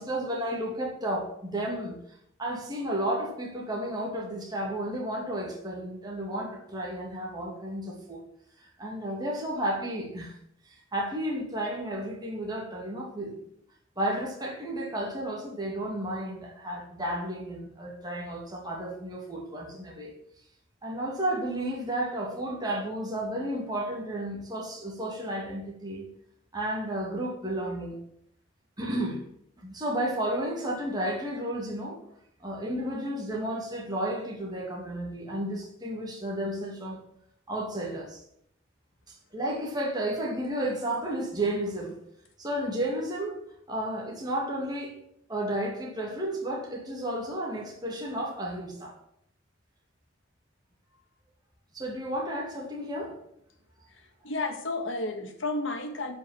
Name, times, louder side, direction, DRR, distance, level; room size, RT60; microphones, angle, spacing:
voice 1, 0.0-2.0 2.4-8.2 8.8-10.4 10.7-13.4 14.0-20.1 20.8-26.1 26.5-28.0 28.8-29.2 29.6-32.0 32.4-37.0 37.5-38.2 39.1-42.0 42.4-43.4 43.7-45.0 45.3-49.0 51.7-53.2, right 1 dB, 20° right, -1 dB, 2.4 m, -32 dB
voice 2, 53.9-56.2, left 2 dB, 80° left, 4 dB, 2.1 m, -32 dB
11.5 x 5.6 x 8.9 m, 0.74 s
head